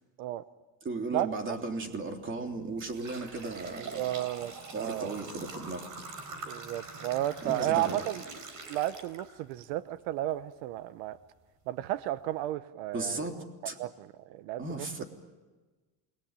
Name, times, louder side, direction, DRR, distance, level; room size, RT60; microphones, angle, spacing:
voice 1, 0.8-4.0 4.7-5.9 7.4-8.0 12.9-13.8 14.6-15.0, right 3 dB, 25° right, 4 dB, 3.3 m, -36 dB
sound 1, 2.0-2.1 2.5-9.7 10.1-10.2 11.1-11.2 11.7-11.8 12.2-12.4, right 3 dB, 40° right, 4.5 m, -44 dB
voice 2, 4.0-5.2 6.5-8.2 8.7-11.2 11.7-13.3 13.8-15.0, right 14 dB, 85° right, 14 dB, 1.0 m, -33 dB
29.0 x 21.0 x 8.9 m, 1.3 s
cardioid pair, 135°, 47 cm